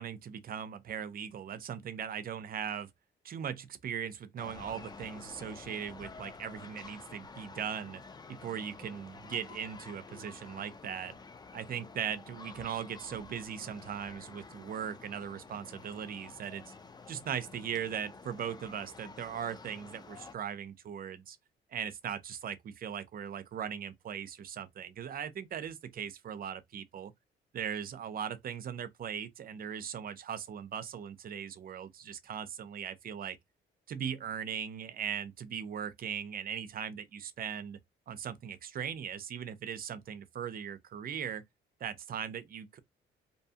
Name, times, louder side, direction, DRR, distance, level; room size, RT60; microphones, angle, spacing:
voice 1, 0.0-2.9 3.2-8.0 8.3-11.2 11.5-16.6 17.1-21.4 21.7-27.1 27.5-33.4 33.9-37.8 38.1-41.4 41.8-42.8, right 8 dB, 45° right, 0.5 m, -39 dB
sound 1, 4.4-20.3, left 4 dB, 20° left, 0.4 m, -50 dB
2.7 x 2.2 x 2.7 m
cardioid pair, 90°, 20 cm